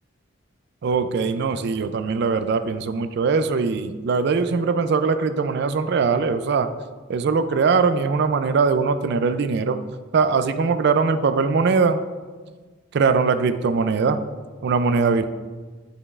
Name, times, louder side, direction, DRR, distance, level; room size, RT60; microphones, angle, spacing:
voice 1, 0.8-6.7 7.1-9.8 10.1-12.0 12.9-14.2 14.6-15.2, right 5 dB, 55° right, 10 dB, 0.4 m, -21 dB
9.7 x 5.1 x 2.4 m, 1.4 s
head